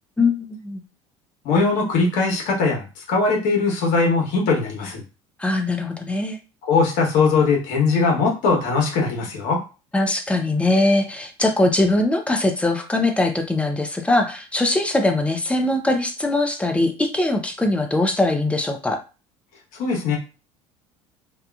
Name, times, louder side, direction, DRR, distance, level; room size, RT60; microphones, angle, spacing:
voice 1, 0.2-0.8 5.4-6.4 9.9-19.0, left 2 dB, 10° left, 4 dB, 0.5 m, -21 dB
voice 2, 1.4-5.0 6.6-9.6 19.8-20.2, left 4 dB, 70° left, 0 dB, 1.1 m, -20 dB
2.7 x 2.4 x 2.3 m, 0.32 s
supercardioid pair, 90°, 14 cm